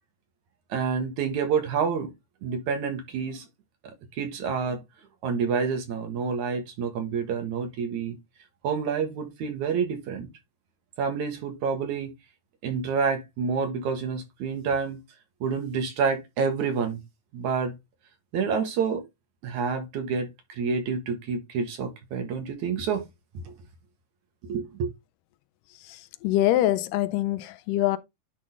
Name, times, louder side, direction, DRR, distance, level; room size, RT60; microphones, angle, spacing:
voice 1, 0.7-2.1 2.4-3.5 3.8-4.8 5.2-8.2 8.6-10.3 11.0-12.1 12.6-15.0 15.4-17.0 17.3-17.7 18.3-19.0 19.4-23.1 23.4-23.5 24.5-24.9, right 5 dB, 65° right, 2.7 m, -28 dB
voice 2, 25.9-28.0, left 14 dB, 85° left, 2.2 m, -24 dB
10.5 x 3.7 x 3.7 m
omnidirectional pair, 3.8 m